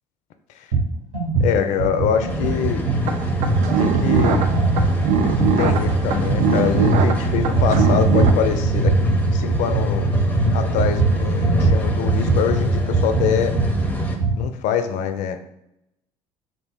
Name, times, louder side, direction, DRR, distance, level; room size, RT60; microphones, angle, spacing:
sound 1, 0.7-0.9 1.1-14.4, right 2 dB, 85° right, 1.3 m, -21 dB
voice 1, 1.4-2.8 3.8-4.4 5.4-8.9 9.3-10.1 10.5-13.6 14.4-15.5, left 8 dB, 60° left, 8 dB, 0.4 m, -24 dB
sound 2, 2.3-14.2, left 2 dB, 10° left, 0.5 m, -29 dB
sound 3, 3.0-8.3, right 6 dB, 55° right, 0.4 m, -22 dB
2.5 x 2.1 x 3.5 m, 0.80 s
hypercardioid pair, 65°, 14 cm